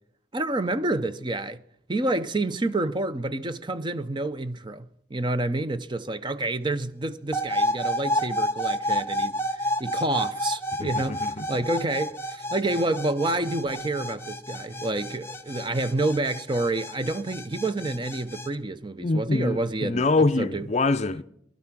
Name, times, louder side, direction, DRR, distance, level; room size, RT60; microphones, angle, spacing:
voice 1, 0.3-1.6 1.9-11.2 11.5-20.0 20.4-20.7, right 2 dB, 25° right, 0.6 m, -28 dB
sound 1, 7.3-18.5, equal, 10° left, 0.8 m, -30 dB
voice 2, 10.8-11.5 19.0-21.2, left 3 dB, 35° left, 0.5 m, -25 dB
19.5 x 12.0 x 6.0 m
head